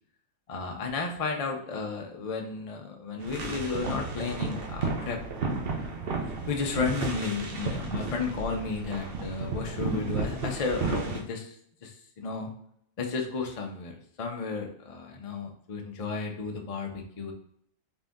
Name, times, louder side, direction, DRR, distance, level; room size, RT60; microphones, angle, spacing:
voice 1, 0.5-5.2 6.5-11.6 11.8-12.5 13.0-17.3, left 4 dB, 65° left, 2 dB, 0.3 m, -33 dB
sound 1, 3.2-11.2, right 3 dB, 50° right, 0.8 m, -33 dB
4.0 x 2.6 x 3.5 m, 0.69 s
omnidirectional pair, 1.5 m